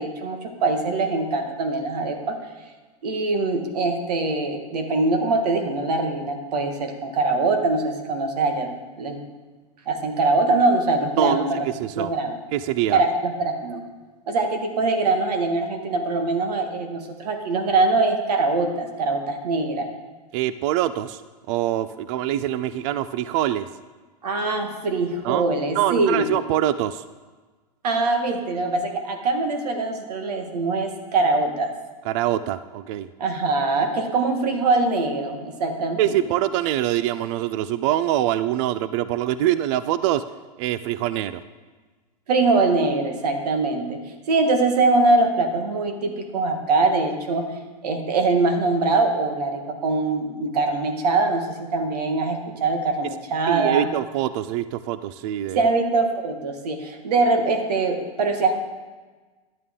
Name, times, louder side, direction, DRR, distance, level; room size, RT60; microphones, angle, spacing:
voice 1, 0.0-2.4 3.0-8.7 9.0-9.2 9.9-11.6 11.9-12.3 12.9-13.8 14.3-19.9 24.2-26.3 27.8-31.7 33.2-36.2 42.3-44.0 44.3-47.5 47.8-53.9 55.5-58.6, right 3 dB, 75° right, 5 dB, 1.5 m, -23 dB
voice 2, 11.7-12.1 12.5-13.0 20.3-21.2 21.5-23.7 25.2-25.4 25.7-27.0 32.0-33.1 36.0-40.3 40.6-41.4 53.5-55.7, right 12 dB, 50° right, 14 dB, 0.4 m, -24 dB
11.0 x 8.4 x 3.7 m, 1.3 s
hypercardioid pair, 125°, 21 cm